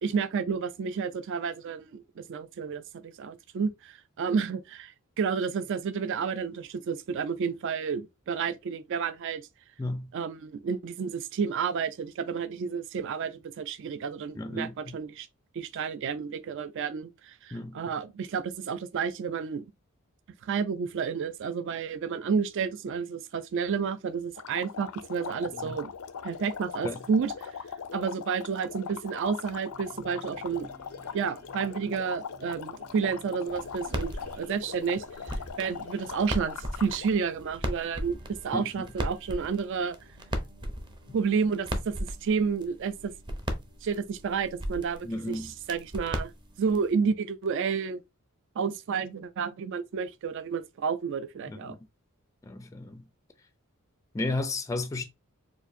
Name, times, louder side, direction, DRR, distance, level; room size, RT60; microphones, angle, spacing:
voice 1, 0.0-9.4 10.1-15.3 15.5-19.6 20.4-25.9 26.2-27.5 27.9-30.7 31.1-40.0 41.1-43.1 43.8-46.3 46.6-48.0 48.6-51.8, right 6 dB, 60° right, 0.4 m, -31 dB
voice 2, 9.8-10.1 14.4-14.7 17.5-17.8 25.5-25.8 26.8-27.0 38.5-38.7 45.0-45.5 51.5-51.8 52.4-53.1 54.1-55.0, left 2 dB, 15° left, 0.3 m, -33 dB
sound 1, 24.4-37.2, left 6 dB, 80° left, 0.5 m, -40 dB
sound 2, 29.7-46.8, right 2 dB, 40° right, 1.3 m, -57 dB
sound 3, 33.5-46.9, equal, 20° right, 0.6 m, -37 dB
4.4 x 2.5 x 2.6 m
head